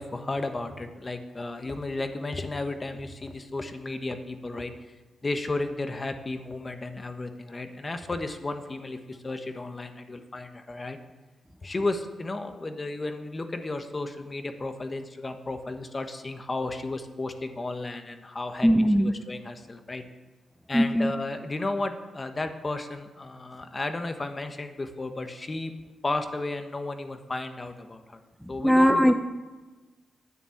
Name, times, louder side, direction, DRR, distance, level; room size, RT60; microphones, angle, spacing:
voice 1, 0.0-4.8 5.2-11.0 11.6-18.7 19.0-20.0 20.7-25.7 26.0-28.2 28.5-29.1, left 2 dB, 30° left, 8 dB, 1.2 m, -33 dB
voice 2, 18.6-19.1 20.7-21.1 28.6-29.1, equal, ahead, 7 dB, 0.6 m, -19 dB
9.6 x 7.3 x 8.5 m, 1.2 s
cardioid pair, 70°, 0 cm